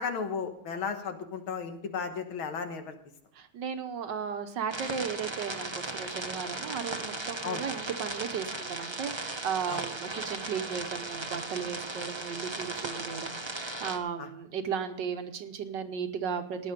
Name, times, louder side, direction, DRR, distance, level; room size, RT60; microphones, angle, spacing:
voice 1, 0.0-3.0 7.4-7.7 9.7-9.8 14.2-14.3, left 5 dB, 80° left, 7 dB, 2.2 m, -34 dB
voice 2, 3.4-16.7, right 7 dB, 65° right, 8 dB, 1.5 m, -35 dB
sound 1, 4.7-14.0, right 2 dB, 20° right, 0.9 m, -37 dB
17.0 x 9.9 x 5.1 m, 0.72 s
omnidirectional pair, 2.3 m